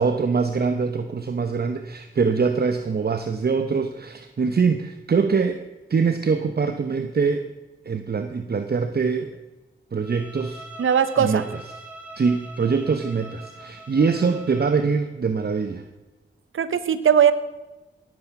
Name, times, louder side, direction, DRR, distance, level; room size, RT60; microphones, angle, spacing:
voice 1, 0.0-7.5 7.8-9.4 9.9-10.7 11.2-11.4 12.1-15.9, right 5 dB, 50° right, 7 dB, 0.9 m, -23 dB
Bowed string instrument, 10.0-14.9, right 2 dB, 5° right, 2.8 m, -43 dB
voice 2, 10.8-11.5 16.5-17.3, right 8 dB, 75° right, 13 dB, 0.9 m, -19 dB
19.0 x 8.3 x 5.9 m, 1.1 s
cardioid pair, 60°, 21 cm